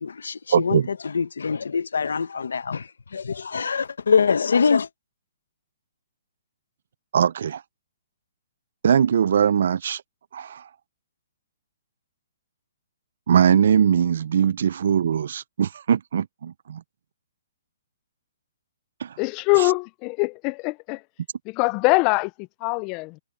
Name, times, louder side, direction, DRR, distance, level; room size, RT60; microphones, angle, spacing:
voice 1, 0.0-4.9, left 5 dB, 85° left, 1.0 m, -24 dB
voice 2, 0.5-0.9 7.1-7.6 8.8-10.0 10.3-10.6 13.3-16.8 19.0-19.1, right 8 dB, 60° right, 0.5 m, -21 dB
voice 3, 19.2-21.0 21.5-23.2, left 29 dB, 25° left, 0.4 m, -23 dB
hypercardioid pair, 160°, 0 cm